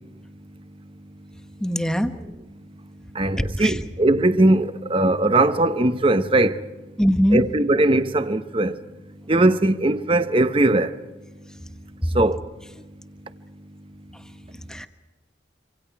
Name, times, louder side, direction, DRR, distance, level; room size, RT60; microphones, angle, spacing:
voice 1, 1.6-2.1 3.6-3.8 7.0-7.4 14.7-14.9, equal, 5° left, 1.1 m, -21 dB
voice 2, 3.1-6.6 7.3-8.8 9.3-11.0 12.1-12.4, right 2 dB, 30° right, 0.9 m, -19 dB
26.5 x 26.0 x 4.7 m
head